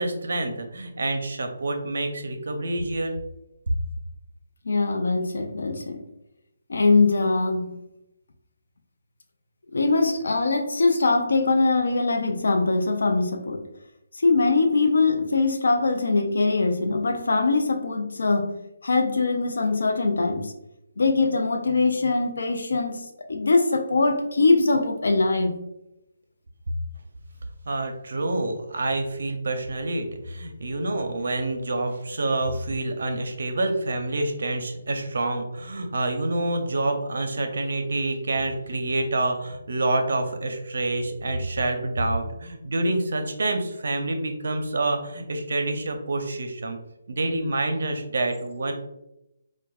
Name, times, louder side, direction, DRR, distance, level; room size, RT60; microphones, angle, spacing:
voice 1, 0.0-3.2 27.7-46.8 47.1-48.7, right 2 dB, 65° right, 5 dB, 0.6 m, -27 dB
voice 2, 4.7-6.1 6.7-7.7 9.7-13.7 14.1-18.5 18.8-20.5 21.0-23.0 23.3-25.6, left 3 dB, 75° left, 3 dB, 0.4 m, -22 dB
4.5 x 2.2 x 2.3 m, 0.87 s
figure-of-eight pair, 155°, 0 cm